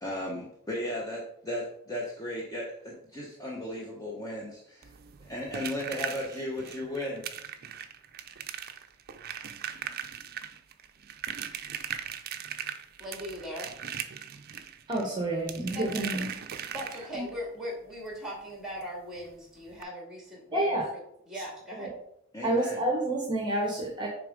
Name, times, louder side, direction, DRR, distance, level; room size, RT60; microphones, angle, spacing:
voice 1, 0.0-4.9 5.2-7.2 22.3-22.8, left 1 dB, 15° left, -2 dB, 0.8 m, -35 dB
sound 1, 4.8-17.3 18.8-18.9 19.2-19.3 19.7-19.8, right 8 dB, 45° right, 0.5 m, -39 dB
voice 2, 13.0-13.7 15.7-16.2 16.7-20.8 21.3-22.0, equal, ahead, -1 dB, 2.1 m, -39 dB
voice 3, 14.9-16.3 16.6-16.7 17.1-17.3 20.5-20.9 21.3-21.4 21.8-21.9 22.4-24.1, right 1 dB, 20° right, -1 dB, 1.0 m, -29 dB
6.8 x 3.6 x 5.1 m, 0.72 s
head